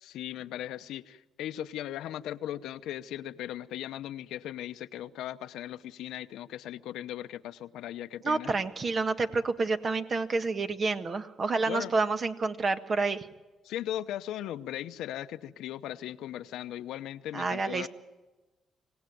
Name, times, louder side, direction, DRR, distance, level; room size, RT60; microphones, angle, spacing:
voice 1, 0.0-8.5 11.7-11.9 13.6-17.9, left 12 dB, 85° left, 11 dB, 0.9 m, -38 dB
voice 2, 8.2-13.3 17.3-17.9, right 3 dB, 40° right, 9 dB, 1.6 m, -29 dB
26.0 x 18.0 x 9.3 m, 1.1 s
cardioid pair, 90°, 0 cm